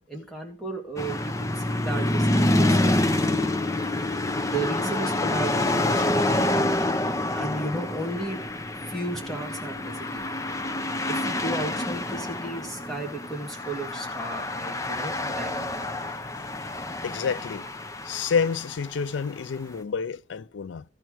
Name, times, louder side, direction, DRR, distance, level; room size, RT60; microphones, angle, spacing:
voice 1, 0.0-3.5 4.5-6.7 7.3-8.4 8.9-10.3 11.1-15.9, right 2 dB, ahead, 2.1 m, -34 dB
sound 1, 1.0-19.4, left 1 dB, 15° left, 0.6 m, -27 dB
voice 2, 17.0-17.7 18.0-20.8, left 6 dB, 85° left, 0.4 m, -28 dB
13.5 x 4.6 x 6.1 m
head